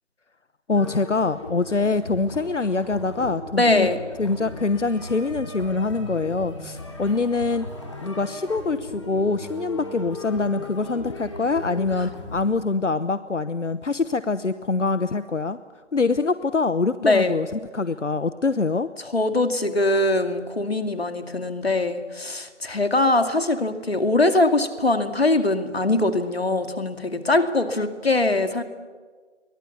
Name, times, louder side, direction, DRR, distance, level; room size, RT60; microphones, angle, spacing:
voice 1, 0.7-3.9 4.2-7.7 8.0-15.6 15.9-18.9, left 3 dB, 85° left, 13 dB, 1.1 m, -24 dB
sound 1, 0.7-12.4, left 2 dB, 25° left, 2.9 m, -37 dB
voice 2, 3.6-4.0 17.0-17.3 19.0-28.6, left 2 dB, 60° left, 7 dB, 2.4 m, -22 dB
29.5 x 23.0 x 7.2 m, 1.5 s
figure-of-eight pair, 170°, 35 cm